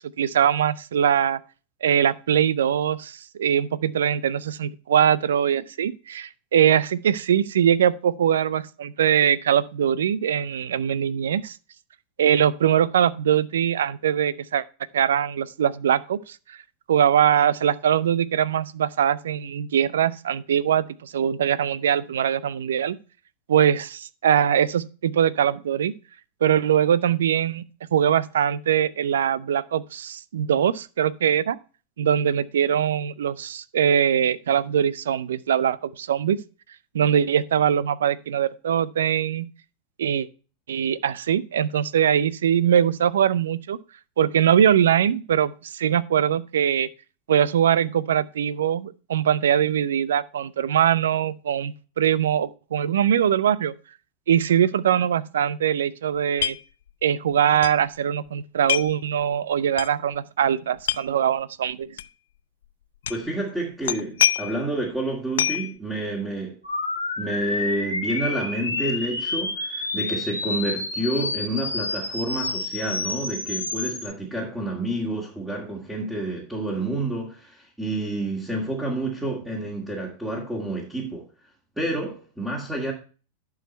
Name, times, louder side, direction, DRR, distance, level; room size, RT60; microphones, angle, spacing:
voice 1, 0.2-1.4 1.8-11.6 12.2-14.6 14.9-16.6 16.9-23.0 23.5-25.9 26.4-27.6 27.9-31.6 32.0-36.4 36.9-39.5 40.0-40.3 40.7-43.8 44.2-46.9 47.3-53.7 54.3-56.6 57.0-61.9, right 9 dB, 70° right, 0.5 m, -22 dB
sound 1, 56.4-56.6 56.9-57.0 57.6-57.8 58.7-59.0 59.8-59.9 60.8-61.0 62.0-62.1 63.0-63.3 63.8-64.7 65.4-65.7, left 11 dB, 65° left, 0.3 m, -24 dB
voice 2, 63.1-66.6 67.2-81.3 81.8-82.9, right 1 dB, 5° right, 2.3 m, -29 dB
sound 2, 66.6-74.1, left 3 dB, 90° left, 1.9 m, -29 dB
11.0 x 4.7 x 4.4 m
figure-of-eight pair, 95°, 0 cm